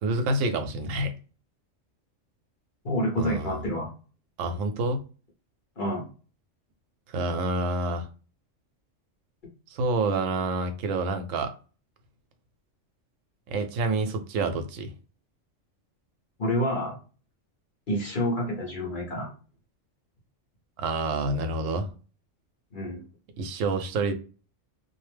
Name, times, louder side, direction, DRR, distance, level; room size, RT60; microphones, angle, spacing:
voice 1, 0.0-1.1 3.2-3.7 4.4-5.0 7.1-8.1 9.7-11.5 13.5-14.9 20.8-21.9 23.4-24.1, right 2 dB, 85° right, 1.0 m, -28 dB
voice 2, 2.8-3.9 5.8-6.1 16.4-17.0 17.9-19.3 22.7-23.0, equal, 45° left, 0.9 m, -28 dB
2.5 x 2.0 x 3.2 m
omnidirectional pair, 1.3 m